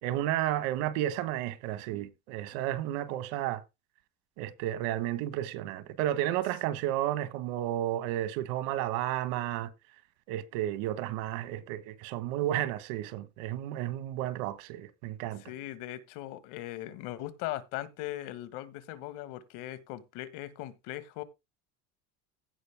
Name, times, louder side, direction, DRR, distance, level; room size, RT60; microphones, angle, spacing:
voice 1, 0.0-3.6 4.4-9.7 10.3-15.4, right 13 dB, 75° right, 1.6 m, -32 dB
voice 2, 15.4-21.2, left 14 dB, 65° left, 1.7 m, -39 dB
16.0 x 5.4 x 3.5 m
cardioid pair, 150°, 34 cm